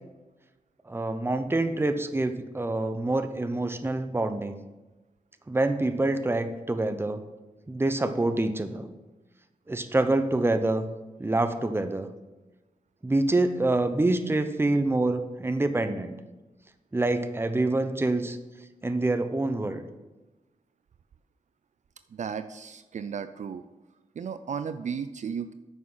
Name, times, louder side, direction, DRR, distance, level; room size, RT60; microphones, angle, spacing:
voice 1, 0.9-4.6 5.5-7.2 7.7-8.9 9.7-10.9 11.2-12.1 13.0-16.2 16.9-18.4 18.8-19.8, right 2 dB, 15° right, 9 dB, 0.8 m, -26 dB
voice 2, 22.1-23.6 24.2-25.5, right 7 dB, 60° right, 11 dB, 0.4 m, -34 dB
9.3 x 6.3 x 5.6 m, 1.1 s
cardioid pair, 80°, 14 cm